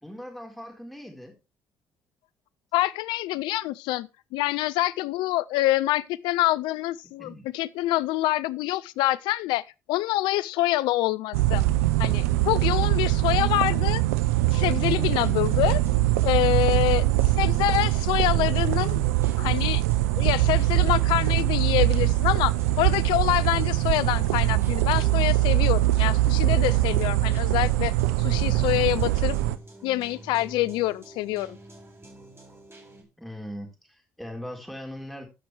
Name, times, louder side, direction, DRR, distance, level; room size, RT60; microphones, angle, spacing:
voice 1, 0.0-1.3 7.2-7.5 13.3-13.7 17.4-17.9 33.2-35.3, equal, ahead, 3.9 m, -40 dB
voice 2, 2.7-9.6 9.9-11.6 12.0-14.0 14.4-15.8 16.2-17.1 17.4-19.0 19.4-19.8 20.2-27.9 28.2-29.4 29.8-31.6, left 16 dB, 70° left, 0.5 m, -26 dB
sound 1, 11.3-29.6, right 16 dB, 85° right, 0.5 m, -23 dB
sound 2, 14.3-33.0, right 1 dB, 30° right, 3.5 m, -48 dB
14.5 x 5.9 x 3.3 m
hypercardioid pair, 55°, 8 cm